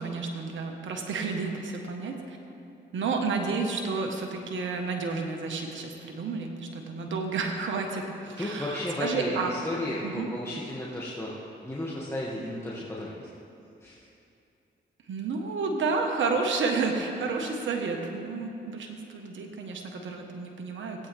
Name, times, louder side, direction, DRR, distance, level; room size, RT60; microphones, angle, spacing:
voice 1, 0.0-2.4 2.9-9.5 10.0-10.3 15.1-21.1, right 4 dB, 75° right, 2 dB, 1.4 m, -31 dB
voice 2, 8.4-13.3 13.8-14.0, left 1 dB, 15° left, -6 dB, 2.0 m, -34 dB
18.5 x 8.7 x 3.5 m, 2.6 s
supercardioid pair, 50°, 20 cm